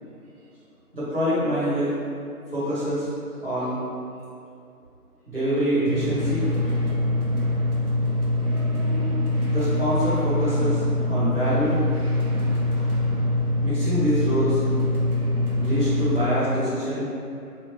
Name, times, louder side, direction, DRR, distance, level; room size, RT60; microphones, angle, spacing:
voice 1, 0.9-1.9 2.5-3.1 3.4-3.8 5.3-6.4 9.5-11.8 13.6-14.6 15.6-17.1, equal, 35° right, -13 dB, 1.4 m, -25 dB
sound 1, 5.9-16.3, left 1 dB, 70° right, 0.9 m, -24 dB
3.4 x 2.7 x 3.0 m, 2.5 s
figure-of-eight pair, 170°, 48 cm